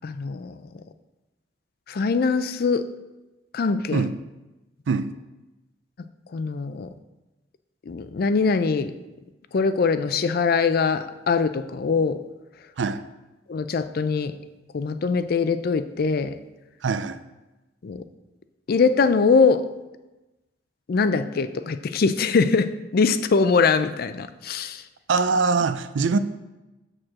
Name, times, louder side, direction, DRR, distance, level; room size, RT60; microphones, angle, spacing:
voice 1, 0.0-0.6 1.9-2.9 3.5-4.0 6.3-6.9 7.9-8.9 9.5-12.2 13.5-14.4 14.7-16.3 17.8-18.0 18.7-19.7 20.9-24.8, left 4 dB, 55° left, 0.4 m, -22 dB
voice 2, 16.8-17.2 25.1-26.2, right 4 dB, 75° right, 0.4 m, -23 dB
6.6 x 4.4 x 6.3 m
head